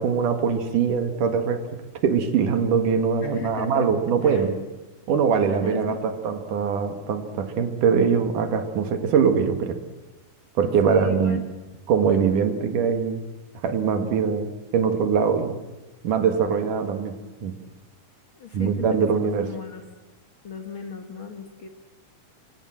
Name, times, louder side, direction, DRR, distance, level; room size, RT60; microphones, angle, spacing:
voice 1, 0.0-1.6 2.0-4.6 5.1-9.8 10.6-11.4 11.9-13.2 13.6-15.5 16.0-17.1 17.4-17.5 18.5-19.5, right 6 dB, 70° right, 8 dB, 3.3 m, -22 dB
voice 2, 3.2-3.9 4.2-4.5 5.4-6.0 10.8-11.4 18.3-19.9 20.4-21.7, left 6 dB, 45° left, 6 dB, 1.9 m, -36 dB
24.5 x 24.5 x 7.8 m, 1.1 s
omnidirectional pair, 3.8 m